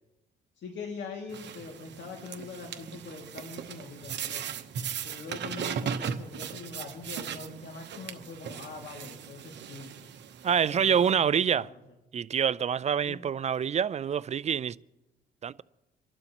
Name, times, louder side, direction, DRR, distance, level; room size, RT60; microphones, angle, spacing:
voice 1, 0.6-4.4 5.0-9.9 10.7-11.7 13.0-13.2, left 4 dB, 65° left, 2.3 m, -42 dB
sound 1, 1.3-11.1, right 8 dB, 65° right, 1.0 m, -38 dB
voice 2, 10.4-11.7 12.1-14.8 15.4-15.6, right 8 dB, 35° right, 0.4 m, -26 dB
27.5 x 12.0 x 3.0 m
cardioid pair, 90°, 20 cm